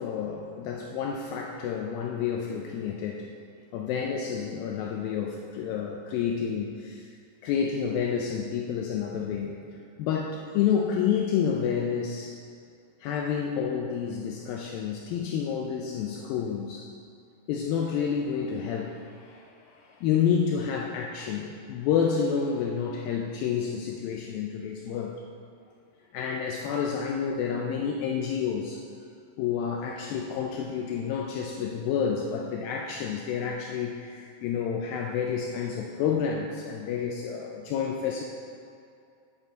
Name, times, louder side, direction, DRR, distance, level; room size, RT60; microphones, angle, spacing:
voice 1, 0.0-3.3 3.7-7.1 7.4-9.6 10.0-12.4 13.0-16.9 17.5-25.1 26.1-28.8 29.4-38.2, left 7 dB, 85° left, 0 dB, 2.1 m, -29 dB
8.8 x 7.4 x 4.0 m, 2.5 s
omnidirectional pair, 4.8 m